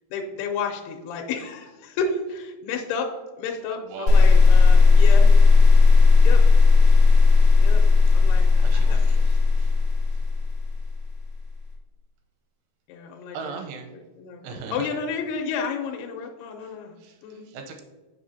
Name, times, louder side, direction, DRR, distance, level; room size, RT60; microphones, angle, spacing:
voice 1, 0.1-3.1 3.4-5.3 6.2-6.4 7.6-7.8 8.1-9.2 12.9-13.6 13.9-17.0 17.2-17.5, left 5 dB, 80° left, 2 dB, 2.5 m, -31 dB
voice 2, 3.9-4.4 8.6-9.7 13.3-13.9 14.4-14.9 17.0-17.8, right 5 dB, 80° right, 4 dB, 2.7 m, -38 dB
sound 1, 4.1-11.2, left 4 dB, 55° left, 1.5 m, -15 dB
7.7 x 5.7 x 2.7 m, 1.2 s
omnidirectional pair, 5.2 m